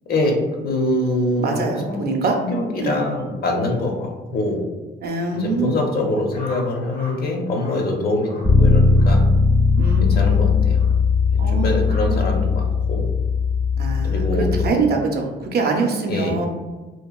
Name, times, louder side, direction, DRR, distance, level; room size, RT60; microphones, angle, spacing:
voice 1, 0.1-1.6 1.9-2.0 2.3-4.6 5.4-8.3 8.6-9.2 10.0-10.8 11.5-13.1 14.0-14.5 16.1-16.4, left 1 dB, 50° left, 1 dB, 0.6 m, -24 dB
voice 2, 1.4-2.4 2.8-3.1 5.0-5.8 9.8-10.4 11.4-11.8 12.1-12.3 13.8-16.5, right 3 dB, 55° right, 2 dB, 0.5 m, -24 dB
sound 1, 6.3-7.2 7.5-7.8 8.2-8.5 8.9-9.1 9.7-10.0 10.7-10.9 11.8-12.1, left 1 dB, 80° left, 1.2 m, -40 dB
Bass guitar, 8.4-14.7, left 4 dB, 5° left, 0.3 m, -18 dB
2.8 x 2.3 x 2.3 m, 1.2 s
cardioid pair, 90°, 20 cm